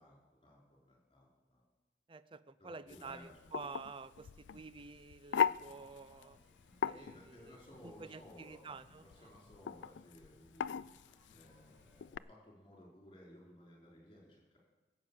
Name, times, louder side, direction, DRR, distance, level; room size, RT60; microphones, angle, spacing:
voice 1, 0.0-1.6 2.6-3.3 4.5-4.6 6.9-8.7 9.0-10.7 11.3-14.6, left 1 dB, 30° left, -3 dB, 5.0 m, -58 dB
voice 2, 2.1-6.4 6.8-9.3, right 4 dB, 30° right, 15 dB, 0.5 m, -50 dB
sound 1, 2.9-12.2, left 7 dB, 85° left, 0.3 m, -40 dB
sound 2, 5.6-12.1, equal, 5° left, 6.2 m, -68 dB
16.0 x 8.0 x 7.4 m, 1.2 s
head